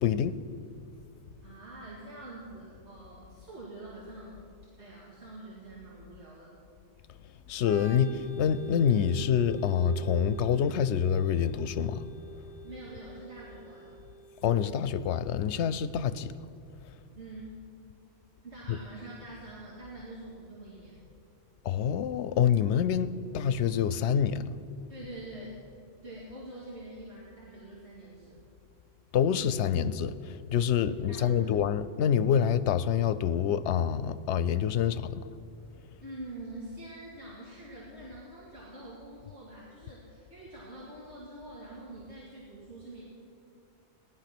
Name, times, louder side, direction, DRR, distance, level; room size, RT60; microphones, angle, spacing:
voice 1, 0.0-0.4 7.5-12.0 14.4-16.3 18.7-18.8 21.6-24.6 29.1-35.2, left 8 dB, 85° left, 0.9 m, -27 dB
voice 2, 1.4-4.4 4.8-6.6 12.6-14.0 17.1-17.7 18.4-21.0 24.9-25.6 26.0-28.4 30.9-31.5 36.0-43.0, right 2 dB, 90° right, 2.5 m, -45 dB
Organ, 7.6-15.1, right 2 dB, 20° right, 1.6 m, -45 dB
16.0 x 11.0 x 6.0 m
omnidirectional pair, 1.1 m